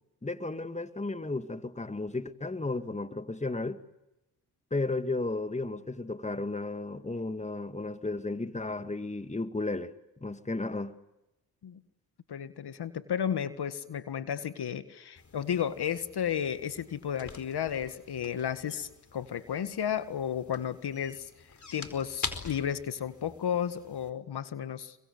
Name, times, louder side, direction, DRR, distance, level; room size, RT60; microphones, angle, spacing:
voice 1, 0.2-3.8 4.7-9.9 10.2-10.9, left 2 dB, 15° left, 2.1 m, -34 dB
voice 2, 12.3-25.0, left 8 dB, 65° left, 1.8 m, -33 dB
sound 1, 15.2-24.1, left 4 dB, 40° left, 4.6 m, -45 dB
29.5 x 23.0 x 8.1 m
supercardioid pair, 55°, 43 cm